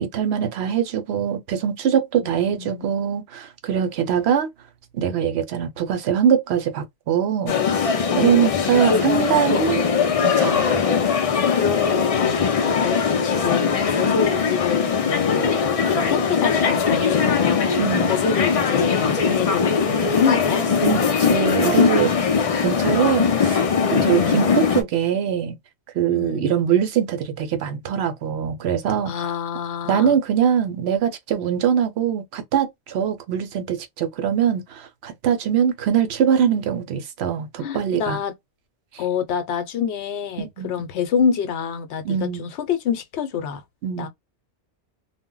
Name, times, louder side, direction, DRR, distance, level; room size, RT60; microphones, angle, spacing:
voice 1, 0.0-4.5 5.0-7.8 8.2-9.8 10.2-10.7 12.7-12.8 17.8-18.1 20.8-22.1 22.6-23.6 23.9-25.6 25.9-29.1 29.8-38.2 40.4-40.7 42.0-42.5 43.8-44.1, right 8 dB, 70° right, 0.8 m, -22 dB
voice 2, 2.2-2.9 8.1-8.5 8.9-9.0 11.5-15.4 15.9-17.7 18.0-20.7 23.8-24.4 26.1-26.5 29.1-30.2 37.6-38.3 39.0-43.6 44.0-44.1, left 7 dB, 70° left, 0.9 m, -27 dB
sound 1, 7.5-24.8, left 6 dB, 55° left, 0.4 m, -20 dB
2.1 x 2.1 x 3.7 m
omnidirectional pair, 1.2 m